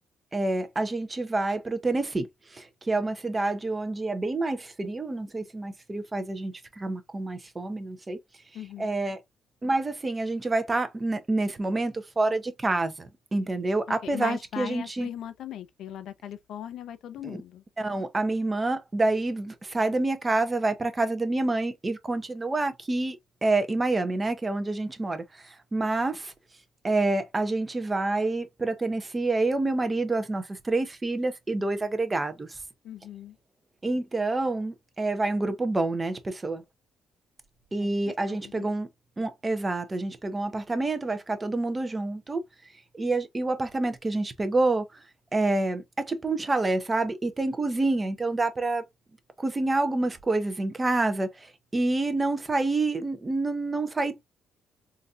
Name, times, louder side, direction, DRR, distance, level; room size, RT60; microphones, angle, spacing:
voice 1, 0.3-2.3 2.5-8.2 8.8-9.2 9.6-15.1 17.2-17.4 17.8-26.3 26.8-32.6 33.8-36.6 37.7-38.9 39.2-42.4 42.9-45.0 45.3-48.8 49.4-54.3, right 2 dB, 25° right, 0.8 m, -28 dB
voice 2, 8.5-8.9 13.9-17.6 32.8-33.4 37.8-38.7, left 10 dB, 75° left, 0.5 m, -39 dB
3.9 x 2.6 x 2.4 m
cardioid pair, 90°, 0 cm